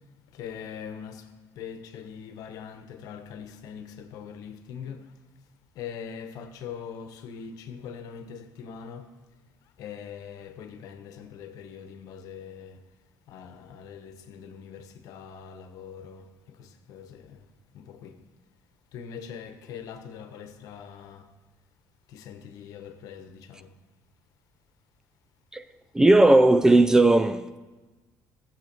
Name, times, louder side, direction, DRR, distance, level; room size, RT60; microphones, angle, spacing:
voice 1, 0.3-1.3 1.5-5.1 5.7-9.1 9.8-12.8 13.3-17.5 17.7-18.2 18.9-21.3 22.1-23.7, left 7 dB, 70° left, 1.1 m, -42 dB
voice 2, 26.0-27.6, right 2 dB, 10° right, 0.3 m, -17 dB
15.5 x 7.8 x 5.3 m
cardioid pair, 155°, 6 cm